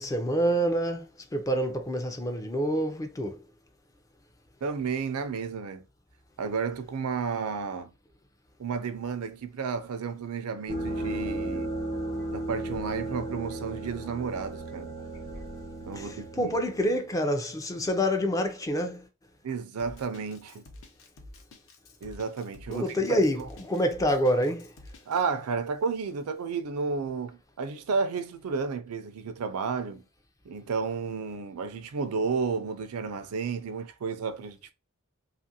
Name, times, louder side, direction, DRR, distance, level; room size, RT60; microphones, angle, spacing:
voice 1, 0.0-3.4 16.0-16.1 16.4-19.1 22.7-24.7, equal, 15° left, 0.4 m, -27 dB
voice 2, 4.6-5.8 6.4-7.9 8.6-11.7 12.3-14.9 15.8-16.6 19.4-20.6 22.0-23.0 23.3-23.5 25.1-30.0 30.4-34.7, right 5 dB, 85° right, 0.4 m, -32 dB
sound 1, 10.7-16.9, right 1 dB, 30° left, 1.0 m, -35 dB
Drum kit, 19.8-25.2, left 2 dB, 60° left, 0.6 m, -49 dB
2.9 x 2.4 x 2.7 m
head